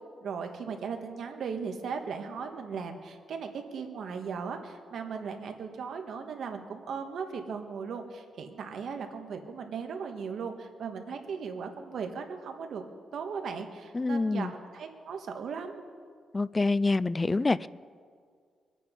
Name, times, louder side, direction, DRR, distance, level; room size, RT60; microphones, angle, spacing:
voice 1, 0.2-12.8 13.1-15.8, right 5 dB, 65° right, 1.5 m, -37 dB
voice 2, 13.9-14.5 16.3-17.7, left 3 dB, 20° left, 0.3 m, -26 dB
24.0 x 9.3 x 5.3 m
cardioid pair, 140°, 0 cm